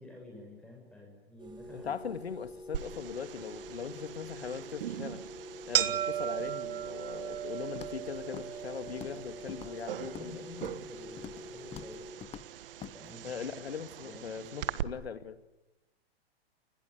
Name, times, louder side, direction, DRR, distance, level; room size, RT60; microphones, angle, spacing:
voice 1, 0.0-1.9 10.1-12.1 12.9-13.4 14.0-14.5, left 2 dB, 5° left, 0 dB, 7.2 m, -50 dB
sound 1, 1.4-12.1, left 1 dB, 15° right, 7.4 m, -47 dB
voice 2, 1.7-5.2 5.7-10.4 13.2-15.5, left 7 dB, 75° left, 11 dB, 2.4 m, -40 dB
sound 2, 2.7-14.8, right 11 dB, 60° right, 1.5 m, -38 dB
Walk footsteps, 7.8-8.1 8.3-8.6 8.9-9.2 9.5-10.3 10.6-10.9 11.2-11.5 11.7-11.9 12.2-12.5 12.8-12.9, left 10 dB, 20° left, 1.0 m, -45 dB
29.5 x 20.0 x 9.6 m, 0.97 s
figure-of-eight pair, 105°, 31 cm